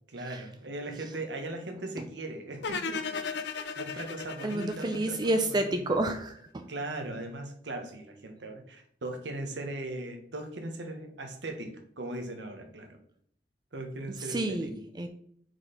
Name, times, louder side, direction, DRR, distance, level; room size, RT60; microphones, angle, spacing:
voice 1, 0.1-3.2 3.5-5.2 5.5-6.0 6.7-13.0 13.7-14.7, right 2 dB, 80° right, 5 dB, 1.1 m, -39 dB
sound 1, 2.6-5.8, left 5 dB, 70° left, 0.6 m, -36 dB
voice 2, 4.4-6.7 14.1-15.1, right 1 dB, 25° right, 7 dB, 0.4 m, -30 dB
4.8 x 4.4 x 4.9 m, 0.65 s
head